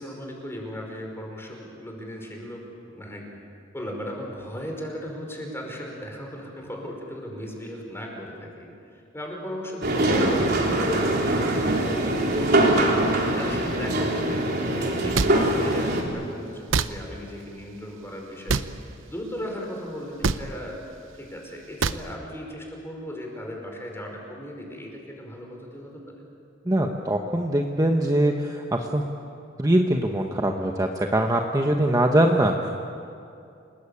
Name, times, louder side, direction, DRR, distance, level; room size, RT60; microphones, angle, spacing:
voice 1, 0.0-3.3 3.7-11.8 12.6-13.0 13.4-18.6 19.1-26.0, equal, 15° left, 1 dB, 5.1 m, -37 dB
sound 1, 9.8-16.0, right 1 dB, 55° right, 3.8 m, -23 dB
sound 2, 15.1-15.3 16.7-16.9 18.5-18.7 20.2-20.4 21.8-22.0, right 4 dB, 75° right, 0.8 m, -23 dB
voice 2, 26.7-29.0 29.6-32.7, right 1 dB, 20° right, 2 dB, 1.2 m, -22 dB
29.0 x 19.5 x 8.6 m, 2.6 s
head